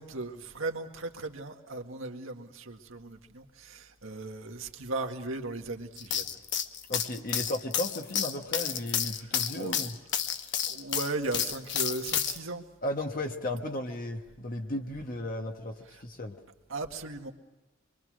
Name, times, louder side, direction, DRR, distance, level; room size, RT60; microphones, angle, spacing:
voice 1, 0.0-6.3 9.1-9.9 10.6-12.6 16.7-17.3, right 2 dB, 85° right, 3 dB, 1.9 m, -37 dB
sound 1, 6.0-12.4, left 9 dB, 60° left, 1.2 m, -31 dB
voice 2, 6.9-10.0 10.4-10.6 12.8-16.4, left 1 dB, 45° left, 2 dB, 1.3 m, -35 dB
26.0 x 23.5 x 6.4 m, 1.1 s
head